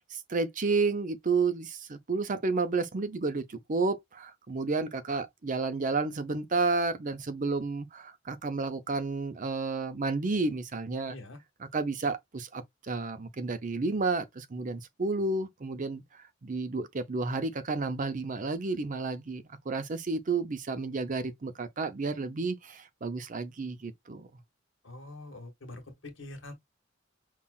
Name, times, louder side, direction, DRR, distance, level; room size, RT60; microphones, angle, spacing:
voice 1, 0.1-11.1 11.7-16.0 16.4-24.3, right 3 dB, 40° right, 0.6 m, -31 dB
voice 2, 11.0-11.4 24.8-26.5, left 2 dB, 70° left, 1.3 m, -45 dB
5.5 x 2.4 x 2.4 m
head